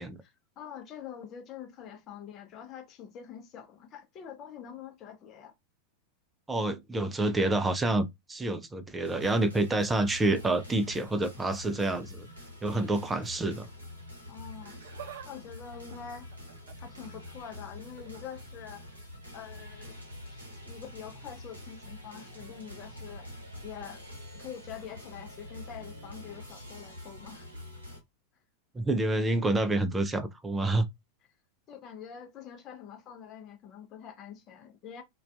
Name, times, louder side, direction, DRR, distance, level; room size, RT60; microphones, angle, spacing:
voice 1, 0.2-5.5 14.3-14.8 15.2-16.3 16.8-18.8 19.3-20.0 20.3-23.3 23.6-24.0 24.3-27.5 31.7-35.0, left 8 dB, 35° left, 0.6 m, -45 dB
voice 2, 6.5-12.3 12.6-13.7 28.7-30.9, right 2 dB, 10° right, 0.4 m, -28 dB
sound 1, 9.0-28.0, left 1 dB, 80° right, 0.9 m, -46 dB
Laughter, 14.5-15.3 15.6-16.9 17.8-18.2 19.5-19.7 20.6-20.7, right 9 dB, 55° right, 0.6 m, -48 dB
2.4 x 2.3 x 2.3 m
figure-of-eight pair, 90°, 0 cm